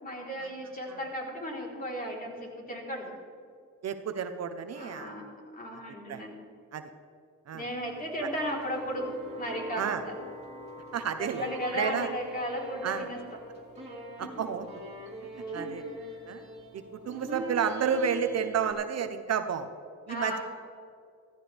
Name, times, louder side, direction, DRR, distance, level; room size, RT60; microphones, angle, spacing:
voice 1, 0.0-3.1 4.8-5.3 5.5-6.4 7.5-9.1 9.4-10.1 11.2-13.2 15.5-15.7 20.1-20.4, equal, 30° left, -2 dB, 3.9 m, -35 dB
voice 2, 3.8-5.1 5.7-5.8 6.1-6.2 6.7-6.9 7.5-7.6 8.2-8.3 9.8-10.0 10.9-12.1 12.8-13.1 14.2-14.6 15.5-15.8 16.3-16.4 16.7-19.7 20.1-20.4, right 7 dB, 55° right, 9 dB, 1.0 m, -31 dB
sound 1, 7.5-18.7, right 1 dB, 20° right, 3.2 m, -42 dB
15.0 x 14.5 x 3.5 m, 2.3 s
cardioid pair, 90°, 30 cm